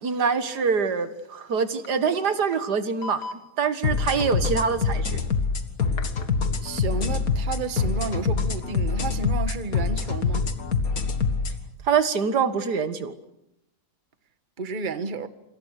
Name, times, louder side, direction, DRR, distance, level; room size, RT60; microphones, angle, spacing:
voice 1, 0.0-5.2 11.9-13.1, right 6 dB, 80° right, 2.1 m, -25 dB
sound 1, 1.1-1.2 1.6-1.7 1.8-1.9 2.5-2.6 3.0-3.4 5.9-6.3, left 3 dB, 85° left, 2.3 m, -38 dB
sound 2, 3.8-11.6, left 5 dB, 60° left, 2.2 m, -25 dB
voice 2, 6.6-10.5 14.6-15.3, right 4 dB, 30° right, 1.4 m, -31 dB
29.0 x 26.0 x 6.6 m
omnidirectional pair, 1.7 m